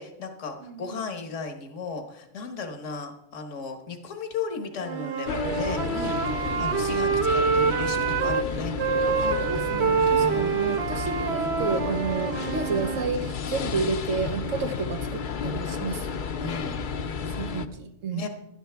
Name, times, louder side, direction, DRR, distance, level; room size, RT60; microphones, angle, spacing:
voice 1, 0.0-8.7 10.1-10.6 16.4-16.8 18.1-18.3, left 4 dB, 75° left, 6 dB, 1.6 m, -35 dB
voice 2, 0.6-1.0 6.0-6.7 9.2-16.1 17.4-18.2, right 4 dB, 90° right, 6 dB, 1.5 m, -31 dB
Wind instrument woodwind instrument, 4.8-8.5 8.8-13.1, right 6 dB, 60° right, 1.0 m, -26 dB
sound 1, 5.3-17.7, left 5 dB, 50° left, 0.7 m, -32 dB
16.0 x 11.5 x 3.4 m, 0.88 s
omnidirectional pair, 1.3 m